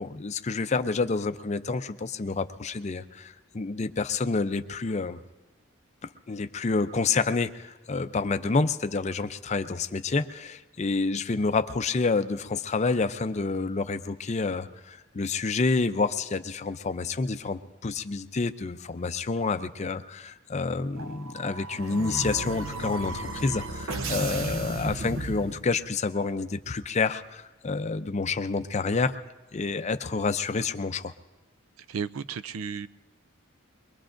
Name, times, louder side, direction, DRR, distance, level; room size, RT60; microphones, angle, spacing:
voice 1, 0.0-5.2 6.0-29.2 29.5-31.1, left 4 dB, 35° left, 10 dB, 0.5 m, -28 dB
sound 1, 21.0-26.0, right 2 dB, 75° right, 0.8 m, -34 dB
voice 2, 31.9-32.9, right 6 dB, 90° right, 15 dB, 0.4 m, -33 dB
23.0 x 22.0 x 2.6 m, 1.2 s
head